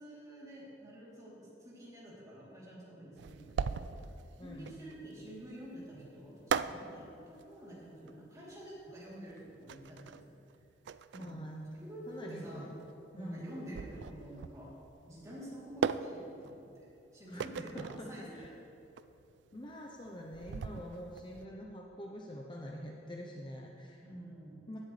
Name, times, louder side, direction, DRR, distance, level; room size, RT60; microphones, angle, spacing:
voice 1, 0.0-3.9 4.4-10.4 11.2-11.4 11.7-12.7 13.1-14.7 15.1-16.8 17.1-18.5 24.0-24.7, right 1 dB, 20° right, -7 dB, 3.2 m, -48 dB
sound 1, 3.2-21.5, right 6 dB, 70° right, 0.3 m, -40 dB
voice 2, 4.4-4.8 11.1-11.7 12.1-12.8 13.2-13.5 17.3-18.5 19.5-24.0 24.7-24.8, equal, 25° left, 0 dB, 0.8 m, -45 dB
16.0 x 11.0 x 3.3 m, 2.9 s
head